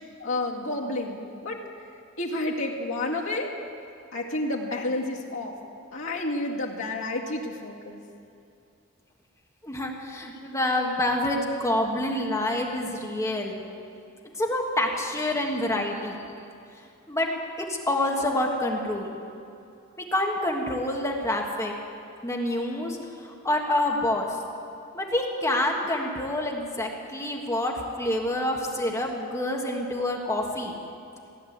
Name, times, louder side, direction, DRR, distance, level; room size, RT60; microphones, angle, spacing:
voice 1, 0.2-1.6 2.2-3.5 4.1-5.5 5.9-8.0, left 2 dB, 75° left, -3 dB, 2.2 m, -30 dB
voice 2, 9.6-13.6 14.4-16.2 17.1-17.3 17.6-19.1 20.0-21.7 22.2-23.0 23.4-24.3 24.9-30.7, left 1 dB, 15° left, 0 dB, 1.5 m, -27 dB
16.5 x 10.5 x 8.0 m, 2.6 s
head